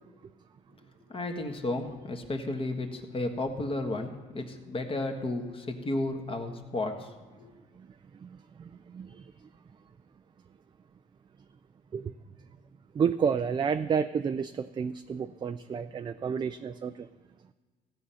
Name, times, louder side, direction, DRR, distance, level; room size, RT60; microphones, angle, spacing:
voice 1, 1.1-7.1 7.4-7.5, left 2 dB, 35° left, 4 dB, 1.5 m, -33 dB
voice 2, 8.6-9.2 11.9-12.1 12.9-17.1, right 6 dB, 25° right, 9 dB, 0.4 m, -30 dB
15.0 x 7.6 x 5.7 m, 1.4 s
cardioid pair, 110°, 17 cm